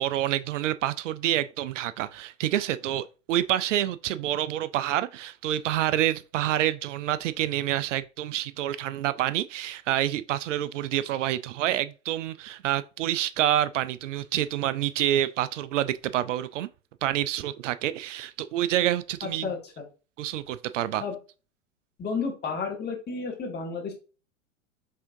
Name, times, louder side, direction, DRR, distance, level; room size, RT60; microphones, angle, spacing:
voice 1, 0.0-16.7 17.0-19.5 20.2-21.0, right 12 dB, 70° right, 0.5 m, -27 dB
voice 2, 19.2-19.6 21.0-21.2 22.0-23.9, left 5 dB, 25° left, 1.8 m, -31 dB
5.5 x 3.6 x 2.6 m
hypercardioid pair, 95°, 39 cm